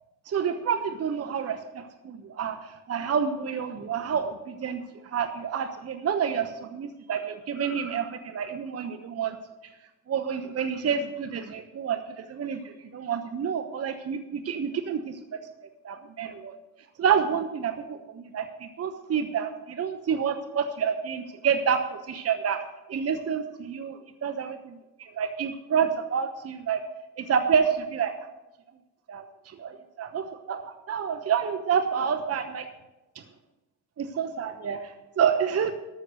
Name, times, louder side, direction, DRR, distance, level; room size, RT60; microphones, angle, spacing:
voice 1, 0.3-9.4 10.1-15.4 15.8-16.6 17.0-22.6 22.9-24.7 25.0-26.8 27.2-28.1 29.1-32.7 34.0-35.7, right 7 dB, 35° right, 8 dB, 1.0 m, -28 dB
13.5 x 6.4 x 6.5 m, 1.0 s
hypercardioid pair, 65°, 42 cm